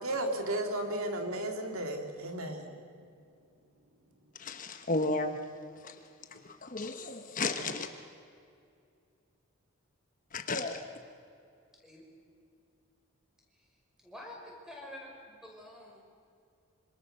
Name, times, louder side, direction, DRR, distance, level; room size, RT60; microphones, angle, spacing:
voice 1, 0.0-2.7, right 1 dB, 75° right, 4 dB, 2.8 m, -34 dB
voice 2, 4.4-5.4 5.8-6.0 6.3-7.9 10.3-10.8, left 3 dB, 35° left, 6 dB, 1.2 m, -33 dB
voice 3, 14.0-16.1, left 1 dB, ahead, -1 dB, 5.3 m, -48 dB
26.5 x 26.5 x 6.8 m, 2.4 s
head